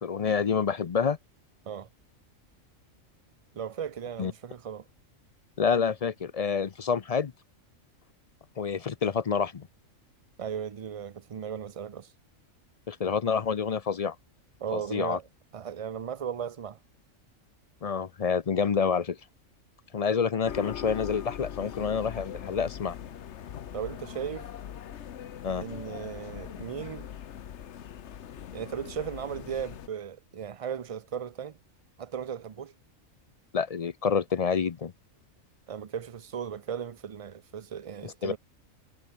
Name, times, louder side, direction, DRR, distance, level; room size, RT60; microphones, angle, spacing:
voice 1, 0.0-1.2 4.2-4.3 5.6-7.3 8.6-9.7 12.9-14.2 14.7-15.2 17.8-19.2 19.9-23.0 25.4-25.6 33.5-34.9 38.0-38.4, left 6 dB, 45° left, 0.5 m, -28 dB
voice 2, 3.5-4.9 10.4-12.1 14.6-15.3 15.5-16.8 23.7-24.5 25.6-27.1 28.5-31.6 32.0-32.7 35.7-38.4, right 8 dB, 45° right, 0.4 m, -36 dB
sound 1, 20.4-29.9, left 9 dB, 60° left, 1.1 m, -41 dB
omnidirectional pair, 1.4 m